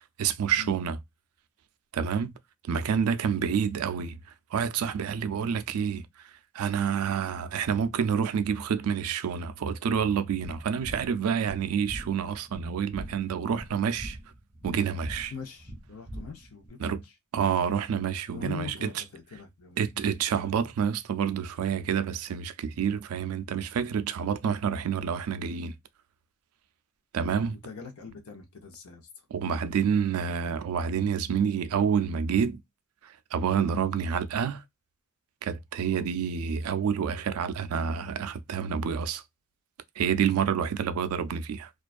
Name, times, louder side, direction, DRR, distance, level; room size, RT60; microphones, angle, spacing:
voice 1, 0.2-1.0 1.9-2.3 2.7-4.2 4.5-6.0 6.5-14.2 14.6-15.3 16.8-17.0 17.3-19.0 19.8-25.7 27.1-27.6 29.3-32.6 33.3-34.6 35.4-39.2 40.0-41.7, right 7 dB, 90° right, 0.3 m, -28 dB
sound 1, 10.4-16.7, equal, 10° right, 0.5 m, -43 dB
voice 2, 15.3-17.1 18.3-19.8 27.5-29.3, left 5 dB, 80° left, 0.6 m, -42 dB
2.4 x 2.2 x 2.4 m
head